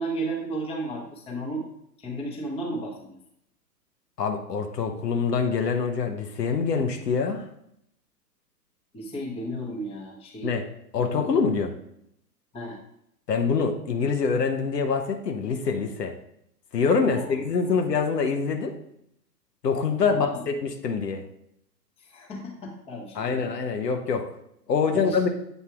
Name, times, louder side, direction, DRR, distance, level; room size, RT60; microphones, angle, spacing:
voice 1, 0.0-1.7 2.0-3.2 8.9-10.6 11.0-11.3 12.5-12.8 17.1-17.4 17.7-18.0 20.1-20.4 22.0-23.5 24.9-25.2, right 1 dB, 10° left, -2 dB, 1.0 m, -34 dB
voice 2, 4.2-7.4 10.4-10.6 10.9-11.7 13.3-16.1 16.7-18.8 19.6-21.2 23.2-24.3 24.7-25.3, left 5 dB, 70° left, 4 dB, 1.0 m, -25 dB
8.1 x 2.7 x 4.6 m, 0.76 s
figure-of-eight pair, 120°, 50 cm